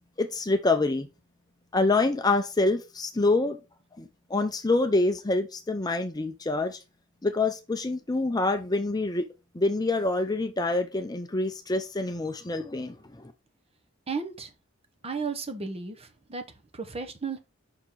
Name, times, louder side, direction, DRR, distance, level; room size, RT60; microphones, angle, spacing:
voice 1, 0.2-1.1 1.7-3.6 4.0-6.8 7.2-9.3 9.5-13.3, left 2 dB, 20° left, 0.6 m, -26 dB
voice 2, 14.1-14.5 15.0-16.4 16.7-17.4, right 5 dB, 30° right, 1.0 m, -34 dB
5.8 x 4.3 x 4.5 m
head